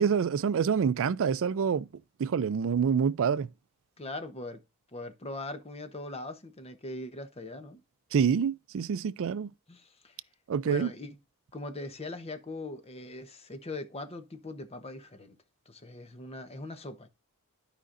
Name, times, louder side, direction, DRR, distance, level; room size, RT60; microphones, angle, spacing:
voice 1, 0.0-1.9 2.2-3.5 8.1-9.5 10.5-10.9, right 6 dB, 65° right, 0.4 m, -26 dB
voice 2, 4.0-4.6 4.9-7.8 9.7-10.1 10.6-11.2 11.5-15.4 15.7-17.1, left 2 dB, 30° left, 0.9 m, -40 dB
12.5 x 5.1 x 2.6 m
head